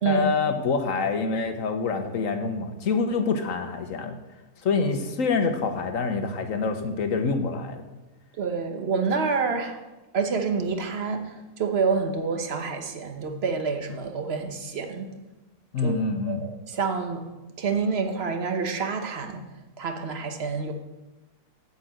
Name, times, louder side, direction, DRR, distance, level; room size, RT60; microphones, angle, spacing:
voice 1, 0.0-4.2 4.6-7.8 15.7-16.5, left 4 dB, 60° left, 7 dB, 1.3 m, -26 dB
voice 2, 8.4-9.8 10.1-15.1 15.8-16.0 16.2-17.3 17.6-19.4 19.8-20.7, right 5 dB, 45° right, 6 dB, 1.2 m, -28 dB
8.0 x 7.2 x 7.8 m, 1.1 s
omnidirectional pair, 1.6 m